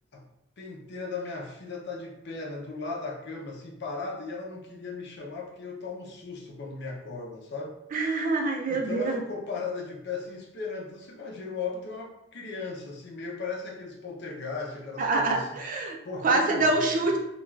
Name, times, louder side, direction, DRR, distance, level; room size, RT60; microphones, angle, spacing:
voice 1, 0.6-7.8 8.7-15.5 15.8-17.1, left 4 dB, 60° left, 0 dB, 0.5 m, -37 dB
voice 2, 7.9-9.2 15.0-16.0 16.2-17.2, right 2 dB, 45° right, 1 dB, 0.4 m, -25 dB
2.4 x 2.3 x 3.1 m, 0.86 s
head